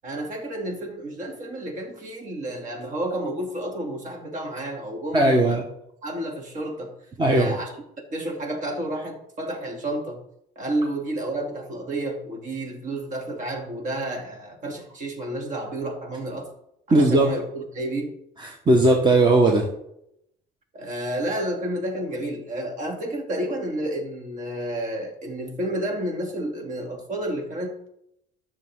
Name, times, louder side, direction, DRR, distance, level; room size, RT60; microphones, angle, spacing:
voice 1, 0.0-5.6 6.0-6.9 7.3-7.7 8.1-10.2 10.6-16.5 16.9-18.1 20.7-27.9, right 1 dB, 50° right, 1 dB, 3.0 m, -30 dB
voice 2, 5.1-5.6 7.2-7.6 16.9-17.3 18.4-19.7, right 2 dB, 25° right, 2 dB, 1.4 m, -18 dB
14.0 x 6.8 x 3.8 m, 0.77 s
cardioid pair, 110°, 17 cm